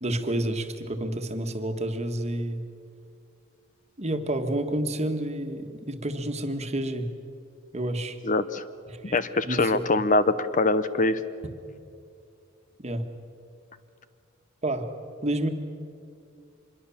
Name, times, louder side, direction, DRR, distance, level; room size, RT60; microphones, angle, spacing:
voice 1, 0.0-2.6 4.0-7.1 7.7-8.2 8.9-9.1 9.4-9.8 11.4-11.5 12.8-13.1 14.6-14.9 15.2-15.5, right 1 dB, 35° right, 6 dB, 1.6 m, -29 dB
voice 2, 8.2-8.6 9.0-11.2, left 2 dB, 40° left, 13 dB, 0.7 m, -23 dB
25.5 x 21.5 x 7.2 m, 2.5 s
head